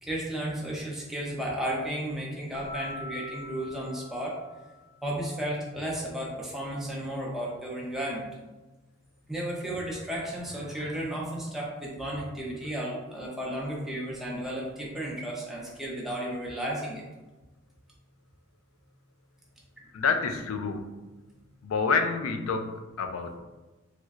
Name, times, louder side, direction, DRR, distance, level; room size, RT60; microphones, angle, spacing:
voice 1, 0.0-4.4 5.0-8.3 9.3-17.0, right 1 dB, ahead, -5 dB, 0.6 m, -33 dB
Keyboard (musical), 2.5-4.9, left 2 dB, 65° right, 0.8 m, -43 dB
voice 2, 19.9-21.0 21.6-23.4, left 4 dB, 90° left, 5 dB, 0.4 m, -28 dB
3.1 x 3.1 x 2.4 m, 1.1 s
head